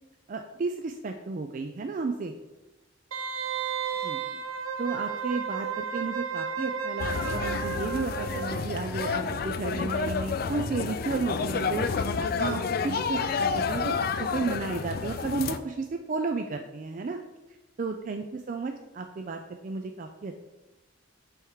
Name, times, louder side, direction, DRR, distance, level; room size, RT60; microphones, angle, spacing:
voice 1, 0.3-2.3 4.0-4.4 4.8-17.2 17.8-20.5, right 4 dB, 40° right, 5 dB, 0.3 m, -33 dB
Wind instrument woodwind instrument, 3.1-8.7 9.0-9.1, right 6 dB, 85° right, 0.6 m, -33 dB
sound 1, 7.0-15.6, left 5 dB, 45° left, 0.3 m, -30 dB
8.6 x 3.6 x 4.6 m, 1.1 s
head